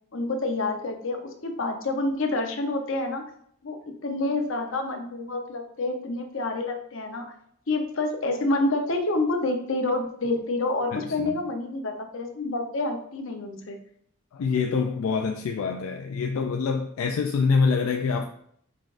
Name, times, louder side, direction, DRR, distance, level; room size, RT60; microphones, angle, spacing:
voice 1, 0.1-3.2 3.6-7.3 7.7-13.8, left 2 dB, 65° left, 0.7 m, -28 dB
voice 2, 10.9-11.4 14.3-18.3, left 5 dB, 85° left, 0.3 m, -25 dB
4.7 x 3.9 x 2.5 m
head